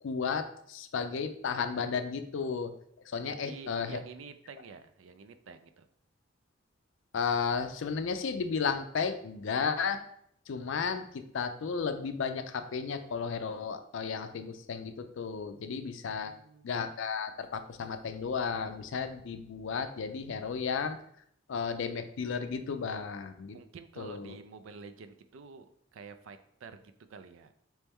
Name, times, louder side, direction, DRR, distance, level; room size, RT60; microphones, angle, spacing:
voice 1, 0.0-2.7 3.0-4.0 7.1-10.0 10.5-16.3 16.6-21.0 21.5-23.6 24.0-24.3, left 5 dB, 65° left, 9 dB, 0.4 m, -33 dB
voice 2, 3.2-5.9 16.1-16.7 23.5-27.5, right 5 dB, 75° right, 10 dB, 0.4 m, -49 dB
4.3 x 3.1 x 3.5 m, 0.68 s
head